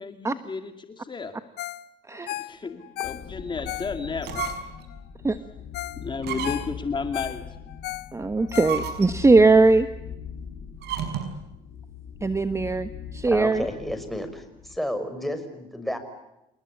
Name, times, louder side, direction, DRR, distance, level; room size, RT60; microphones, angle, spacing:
voice 1, 0.0-1.3 2.3-4.5 6.0-7.6, left 4 dB, 25° left, 7 dB, 2.4 m, -33 dB
Ringtone, 1.6-1.9 2.1-5.0 5.4-5.5 5.7-6.0 6.3-9.2 9.6-9.7, left 16 dB, 75° left, 0.9 m, -35 dB
sound 1, 3.0-14.8, left 7 dB, 60° left, 7.9 m, -41 dB
sound 2, 4.1-4.8 5.3-5.4 6.2-6.9 8.3-9.4 10.8-11.4, right 8 dB, 75° right, 5.8 m, -33 dB
voice 2, 8.1-9.9 12.2-13.6, right 3 dB, 15° right, 10 dB, 1.3 m, -20 dB
voice 3, 13.3-14.4 14.7-16.0, equal, ahead, 8 dB, 5.5 m, -31 dB
28.0 x 20.5 x 9.8 m, 0.92 s
cardioid pair, 110°, 17 cm